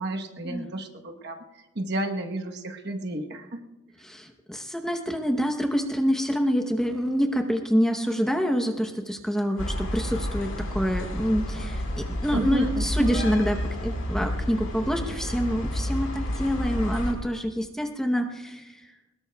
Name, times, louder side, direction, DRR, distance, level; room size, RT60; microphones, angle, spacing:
voice 1, 0.0-3.6 12.3-13.1, right 1 dB, 55° right, 4 dB, 1.1 m, -32 dB
voice 2, 4.0-18.8, equal, 5° left, 4 dB, 0.9 m, -26 dB
sound 1, 9.6-17.1, equal, 90° left, 4.3 m, -30 dB
22.5 x 20.5 x 2.3 m, 1.1 s
head